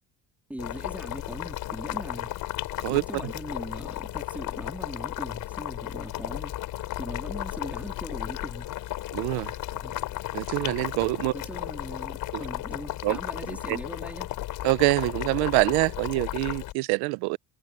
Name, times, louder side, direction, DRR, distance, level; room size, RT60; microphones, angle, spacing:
voice 1, 0.5-2.3 2.9-6.5 7.0-8.7 9.7-10.0 11.3-14.3, right 1 dB, 5° right, 3.4 m, -40 dB
Boiling, 0.6-16.7, left 15 dB, 60° left, 4.9 m, -34 dB
voice 2, 9.1-9.5 10.3-11.3 13.0-13.2 13.7-13.8 14.6-17.4, right 25 dB, 85° right, 0.7 m, -25 dB
cardioid pair, 120°, 37 cm